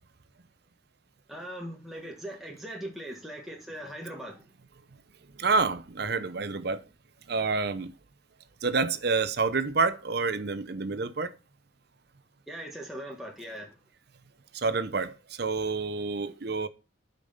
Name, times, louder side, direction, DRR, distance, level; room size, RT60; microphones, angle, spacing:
voice 1, 1.3-4.4 12.5-13.7, right 1 dB, ahead, 1.3 m, -40 dB
voice 2, 5.4-6.8 7.3-7.9 8.6-11.3 14.5-15.1 15.4-16.7, right 4 dB, 55° right, 0.7 m, -28 dB
8.4 x 5.4 x 5.5 m
head